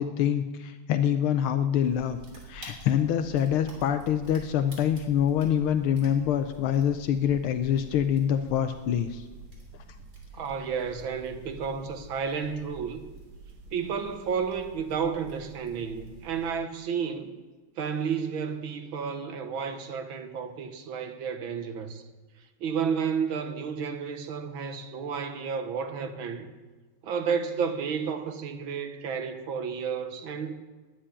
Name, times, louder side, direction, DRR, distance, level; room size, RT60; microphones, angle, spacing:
voice 1, 0.0-2.2 2.5-9.2, left 9 dB, 80° left, 1.6 m, -25 dB
sound 1, 1.8-16.5, right 3 dB, 45° right, 3.8 m, -48 dB
voice 2, 10.3-13.0 13.7-17.3 17.8-22.0 22.6-26.5 27.0-30.5, right 6 dB, 70° right, 1.8 m, -31 dB
10.0 x 10.0 x 9.8 m
omnidirectional pair, 2.3 m